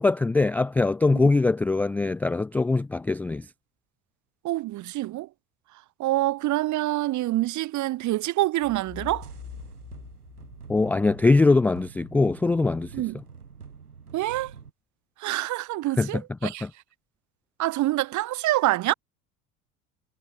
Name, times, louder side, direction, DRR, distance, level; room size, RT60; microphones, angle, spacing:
voice 1, 0.0-3.5 10.7-12.9 16.0-16.7, left 3 dB, 5° left, 0.3 m, -22 dB
voice 2, 4.4-5.3 6.0-9.3 12.9-13.2 14.1-14.5 15.2-16.7 17.6-18.9, right 16 dB, 40° right, 1.5 m, -26 dB
sound 1, 8.6-11.4, left 10 dB, 35° left, 8.0 m, -44 dB
sound 2, 8.6-14.7, right 6 dB, 85° right, 1.9 m, -46 dB
figure-of-eight pair, 70°, 45 cm